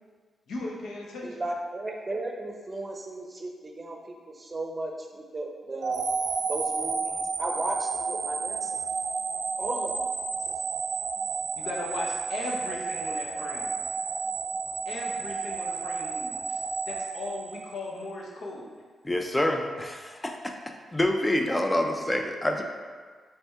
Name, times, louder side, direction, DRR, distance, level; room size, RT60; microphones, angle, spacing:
voice 1, 0.5-1.4 11.5-13.8 14.8-16.6 16.9-18.7, left 2 dB, 80° left, -2 dB, 0.8 m, -37 dB
voice 2, 1.2-6.0 6.5-8.7 9.6-10.1, right 2 dB, 35° right, 1 dB, 0.7 m, -35 dB
sound 1, 5.8-18.0, right 4 dB, 70° right, 0.4 m, -31 dB
voice 3, 19.0-20.5 20.9-22.6, left 1 dB, 15° left, 3 dB, 0.5 m, -27 dB
4.2 x 3.3 x 3.5 m, 1.5 s
cardioid pair, 60°, 0 cm